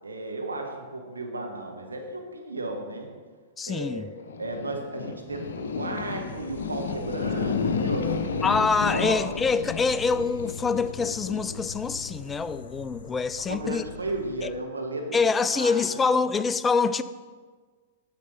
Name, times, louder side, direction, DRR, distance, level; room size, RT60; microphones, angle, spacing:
voice 1, 0.0-3.1 3.7-4.0 4.4-8.4 8.8-9.2 13.4-15.2 15.5-16.2, right 2 dB, 80° right, 1.1 m, -34 dB
voice 2, 3.6-4.1 8.4-13.8 14.4-14.5 15.1-17.0, left 4 dB, 15° left, 0.3 m, -25 dB
sound 1, 4.2-14.6, left 5 dB, 65° left, 0.6 m, -33 dB
9.4 x 6.5 x 4.1 m
figure-of-eight pair, 100°, 0 cm